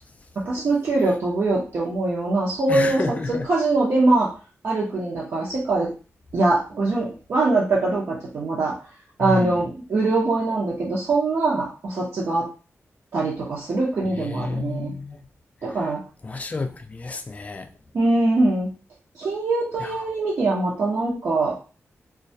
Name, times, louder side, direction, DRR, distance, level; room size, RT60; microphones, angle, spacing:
voice 1, 0.5-3.2 3.4-4.3 4.6-5.9 6.3-8.7 9.2-12.4 13.1-14.9 15.6-16.0 17.9-18.7 19.2-21.5, right 2 dB, 65° right, 0.6 m, -22 dB
voice 2, 2.7-3.5 9.2-9.5 14.1-15.2 16.2-17.7 19.8-20.0, left 3 dB, 30° left, 0.3 m, -30 dB
2.2 x 2.1 x 2.6 m
wide cardioid pair, 125°, 5 cm